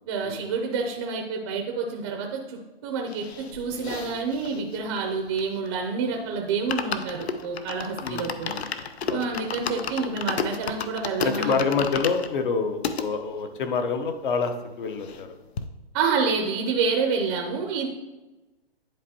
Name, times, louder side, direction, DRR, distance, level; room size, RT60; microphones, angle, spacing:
voice 1, 0.1-3.2 3.5-8.5 9.1-11.6 15.9-17.9, right 5 dB, 25° right, 2 dB, 0.6 m, -28 dB
sound 1, 3.1-5.9 6.2-6.3 6.5-13.1 13.6-13.7 13.9-14.0 14.3-15.3 15.6-15.7, left 6 dB, 75° left, 0.7 m, -33 dB
voice 2, 8.0-8.6 9.1-9.2 11.2-15.4, left 5 dB, 50° left, 7 dB, 0.9 m, -27 dB
10.5 x 4.5 x 2.8 m, 1.1 s
hypercardioid pair, 145°, 32 cm